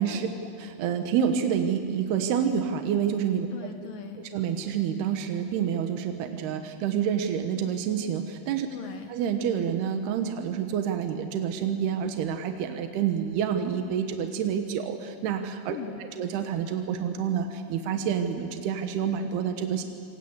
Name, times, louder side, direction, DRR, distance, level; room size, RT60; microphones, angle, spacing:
voice 1, 0.1-0.4 3.5-4.3 8.7-9.2 15.7-16.0, left 7 dB, 65° left, 6 dB, 2.6 m, -41 dB
voice 2, 0.6-3.5 4.3-8.7 9.1-15.8 16.2-19.8, right 8 dB, 80° right, 6 dB, 3.2 m, -28 dB
27.5 x 26.5 x 8.1 m, 2.3 s
omnidirectional pair, 4.7 m